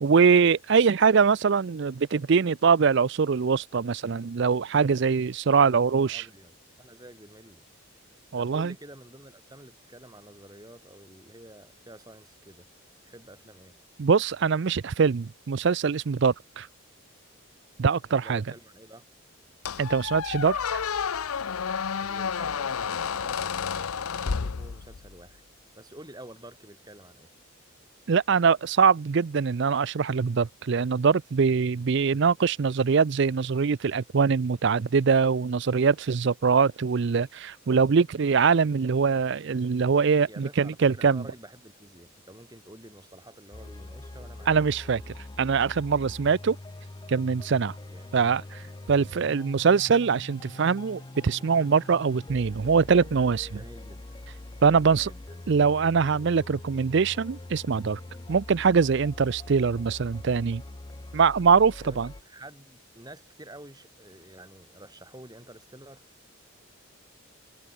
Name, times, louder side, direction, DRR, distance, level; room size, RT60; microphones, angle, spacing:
voice 1, 0.0-6.3 8.3-8.7 14.0-16.7 17.8-18.4 19.8-20.8 28.1-41.2 44.5-46.6 47.1-47.8 48.1-48.6 48.9-53.6 54.6-55.1 55.5-58.0 58.3-60.6 61.1-62.1, right 5 dB, 55° right, 0.4 m, -23 dB
voice 2, 5.6-7.7 8.3-12.7 13.0-13.8 18.2-19.1 22.0-25.4 25.7-27.3 40.2-44.6 47.9-48.1 53.5-54.2 54.6-55.8 61.8-66.4, right 1 dB, 20° right, 6.0 m, -49 dB
Squeak, 19.7-25.2, left 6 dB, 85° left, 0.7 m, -30 dB
sound 1, 43.5-62.2, left 2 dB, 20° left, 0.5 m, -43 dB
head